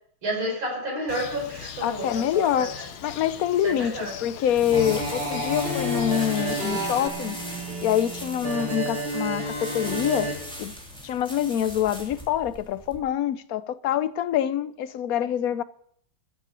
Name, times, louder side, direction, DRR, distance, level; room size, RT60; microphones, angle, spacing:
voice 1, 0.2-2.9 3.6-4.2, equal, 70° right, 6.2 m, -31 dB
Bird, 1.1-7.1, left 8 dB, 90° left, 1.9 m, -40 dB
voice 2, 1.8-2.7 3.0-7.4 7.8-10.3 10.6-10.7 11.0-15.6, left 10 dB, 70° left, 0.8 m, -25 dB
sound 1, 4.5-13.0, equal, ahead, 3.0 m, -40 dB
sound 2, 4.7-10.3, equal, 30° right, 4.4 m, -30 dB
14.0 x 8.2 x 8.2 m
omnidirectional pair, 2.2 m